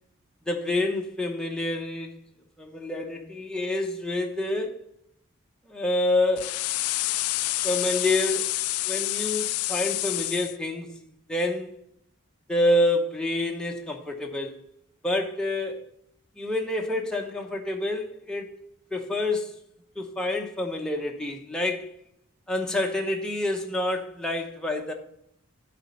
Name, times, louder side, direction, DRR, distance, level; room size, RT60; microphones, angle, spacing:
voice 1, 0.5-2.2 2.6-4.8 5.7-6.6 7.6-8.5 8.9-11.0 11.3-11.8 12.5-14.6 15.0-15.8 16.4-18.6 18.9-19.6 20.0-21.9 22.5-24.9, left 1 dB, 5° left, 0.8 m, -27 dB
sound 1, 6.4-10.6, left 18 dB, 85° left, 0.3 m, -28 dB
10.5 x 4.2 x 7.0 m
head